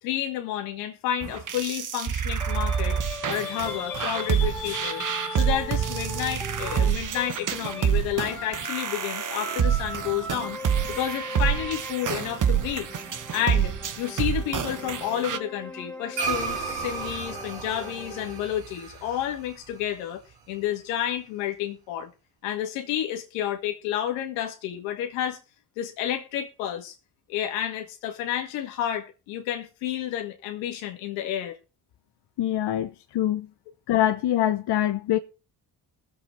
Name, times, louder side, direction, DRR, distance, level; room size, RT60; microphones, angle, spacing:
voice 1, 0.0-3.0 3.3-10.6 10.9-12.9 13.3-20.2 20.5-22.1 22.4-25.4 25.8-26.9 27.3-31.6, left 11 dB, 85° left, 2.1 m, -30 dB
sound 1, 1.2-15.4, right 8 dB, 45° right, 1.2 m, -27 dB
sound 2, 2.4-7.9 8.1-18.4, left 1 dB, ahead, 2.5 m, -40 dB
sound 3, 16.1-20.8, right 5 dB, 85° right, 4.5 m, -34 dB
voice 2, 32.4-33.5 33.9-35.2, left 12 dB, 60° left, 1.0 m, -24 dB
21.5 x 7.8 x 3.3 m
supercardioid pair, 60°, 45 cm